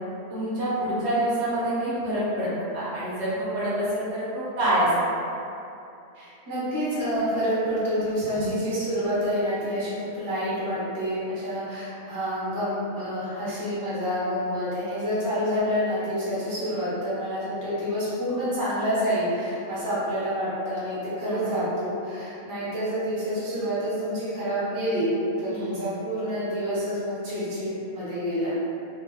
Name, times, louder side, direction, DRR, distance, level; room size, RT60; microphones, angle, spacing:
voice 1, 0.3-5.1 8.3-8.6 21.3-21.6 25.5-25.8, right 1 dB, 60° right, -10 dB, 0.9 m, -27 dB
voice 2, 6.1-28.6, equal, 20° right, -11 dB, 0.6 m, -28 dB
2.2 x 2.1 x 3.2 m, 2.7 s
omnidirectional pair, 1.3 m